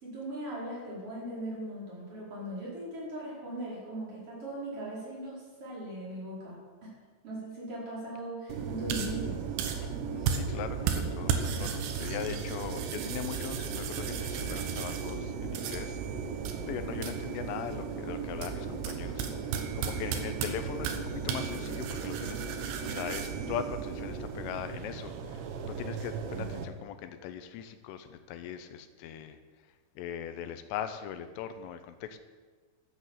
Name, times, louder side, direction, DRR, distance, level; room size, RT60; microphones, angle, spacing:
voice 1, 0.0-6.9 7.2-9.4, right 1 dB, 30° right, -6 dB, 5.3 m, -39 dB
sound 1, 8.5-26.7, right 6 dB, 75° right, 3.2 m, -34 dB
voice 2, 9.8-16.0 16.6-22.4 22.8-29.4 30.0-32.2, left 9 dB, 80° left, 9 dB, 3.2 m, -40 dB
12.5 x 8.1 x 7.4 m, 1.4 s
omnidirectional pair, 5.9 m